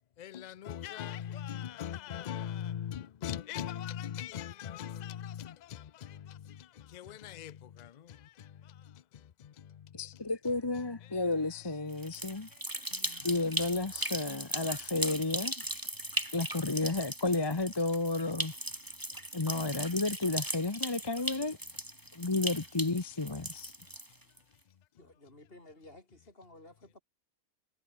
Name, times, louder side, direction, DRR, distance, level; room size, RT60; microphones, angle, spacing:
voice 1, 0.2-9.0 9.4-9.9 12.9-13.2, left 9 dB, 85° left, 0.3 m, -41 dB
voice 2, 9.9-12.5 13.2-15.5 16.3-18.5 19.3-21.6 22.1-23.7, left 3 dB, 20° left, 0.9 m, -32 dB
sound 1, 11.9-24.4, right 1 dB, 15° right, 4.3 m, -38 dB
voice 3, 25.0-27.0, left 1 dB, 40° left, 5.6 m, -54 dB
omnidirectional pair, 1.5 m